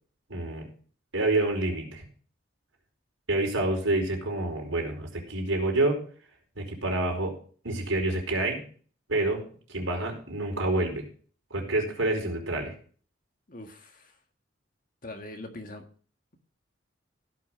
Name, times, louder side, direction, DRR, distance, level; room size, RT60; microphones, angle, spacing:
voice 1, 0.3-0.7 1.1-2.0 3.3-6.0 6.6-7.3 7.6-8.6 9.1-9.4 9.7-11.1 11.5-12.7, right 2 dB, 75° right, 1 dB, 4.8 m, -27 dB
voice 2, 13.5-14.1 15.0-15.8, left 1 dB, 40° left, 6 dB, 1.7 m, -42 dB
16.5 x 6.1 x 6.2 m, 0.43 s
head